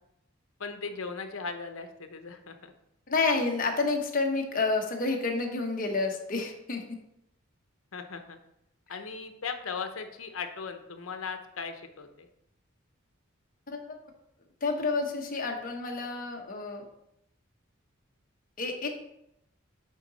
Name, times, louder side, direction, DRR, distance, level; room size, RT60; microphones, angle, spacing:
voice 1, 0.6-2.7 7.9-8.4 8.9-12.3, left 5 dB, 85° left, 7 dB, 0.8 m, -38 dB
voice 2, 3.1-6.8 13.7-14.0 14.6-16.8 18.6-18.9, left 3 dB, 45° left, 2 dB, 1.0 m, -29 dB
8.2 x 4.0 x 4.0 m, 0.80 s
head